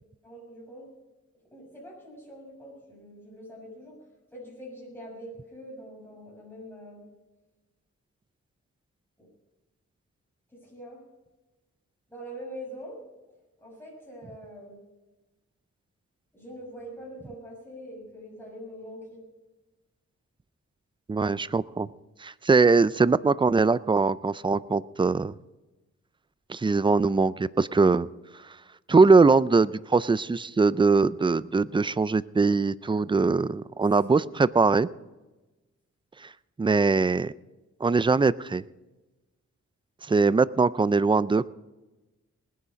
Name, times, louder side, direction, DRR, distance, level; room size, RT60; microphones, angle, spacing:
voice 1, 0.2-0.9 1.5-4.0 4.3-7.0 9.2-9.3 10.5-11.0 12.1-12.9 13.6-14.8 16.3-19.2, equal, 5° left, -3 dB, 6.6 m, -43 dB
voice 2, 21.1-21.9 22.2-25.4 26.5-28.1 28.9-34.9 36.2-36.3 36.6-37.3 37.8-38.6 40.1-41.5, right 4 dB, 15° right, 18 dB, 0.4 m, -22 dB
20.0 x 9.8 x 5.2 m, 1.1 s
cardioid pair, 70°, 30 cm